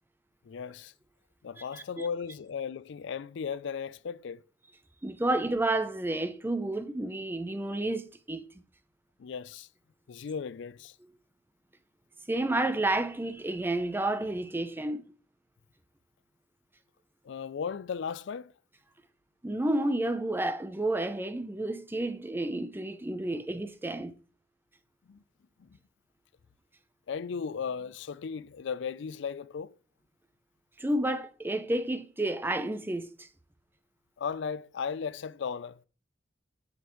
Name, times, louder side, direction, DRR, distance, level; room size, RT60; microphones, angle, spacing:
voice 1, 0.4-0.9 1.4-4.4 9.2-9.7 10.1-11.0 17.2-18.5 25.1-25.2 25.6-25.8 27.1-29.8 34.2-35.8, left 6 dB, 65° left, 0.4 m, -36 dB
voice 2, 1.7-2.1 5.0-8.4 12.3-15.0 19.4-24.1 30.8-33.3, right 1 dB, 10° right, 0.5 m, -30 dB
11.0 x 5.2 x 3.0 m
head